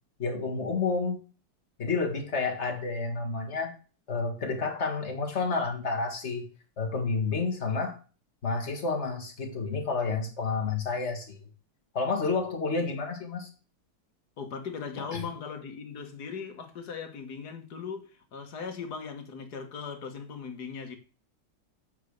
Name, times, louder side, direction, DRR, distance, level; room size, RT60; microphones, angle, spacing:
voice 1, 0.2-1.2 1.8-3.8 4.1-6.5 6.8-8.0 8.4-11.4 11.9-13.5 15.0-15.3, left 4 dB, 40° left, 2.0 m, -30 dB
voice 2, 14.4-21.0, left 5 dB, 60° left, 1.9 m, -39 dB
8.0 x 5.1 x 6.5 m
omnidirectional pair, 2.0 m